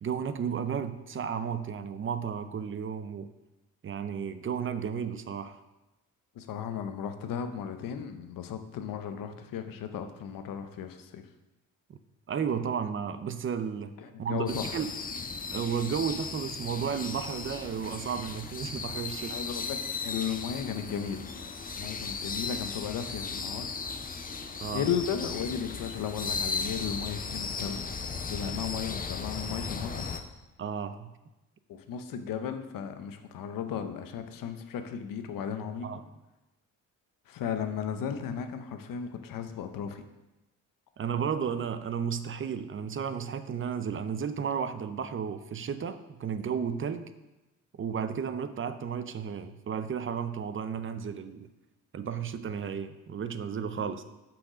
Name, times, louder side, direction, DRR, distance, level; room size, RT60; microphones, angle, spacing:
voice 1, 0.0-3.3 3.8-5.6 11.9-12.0 12.3-13.9 14.2-14.9 15.5-19.4 24.6-24.9 30.6-31.1 35.8-36.0 41.0-47.1 47.7-51.5 51.9-54.0, right 7 dB, 40° right, 11 dB, 0.5 m, -33 dB
voice 2, 6.3-11.3 14.0-14.8 19.3-21.4 21.8-23.7 24.7-27.8 28.3-30.1 31.7-35.9 37.3-40.0 53.8-54.0, left 8 dB, 85° left, 8 dB, 0.7 m, -35 dB
sound 1, 14.5-30.2, left 5 dB, 25° left, 0.6 m, -36 dB
6.3 x 5.9 x 4.9 m, 1.0 s
cardioid pair, 105°, 32 cm